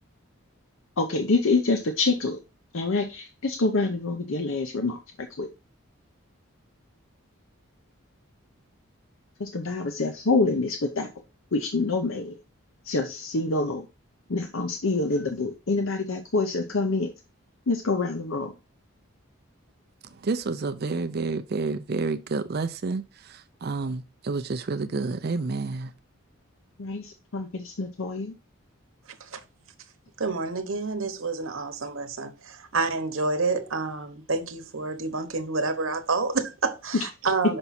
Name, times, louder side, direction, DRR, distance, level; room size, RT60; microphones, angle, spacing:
voice 1, 1.0-2.4 2.7-5.5 9.4-11.1 11.5-12.4 12.8-13.9 14.3-17.1 17.7-18.5 26.8-28.3, left 3 dB, 65° left, 0.7 m, -26 dB
voice 2, 20.1-25.9, right 3 dB, 45° right, 0.4 m, -29 dB
voice 3, 30.2-37.6, right 3 dB, 65° right, 1.0 m, -28 dB
5.9 x 5.4 x 4.2 m
head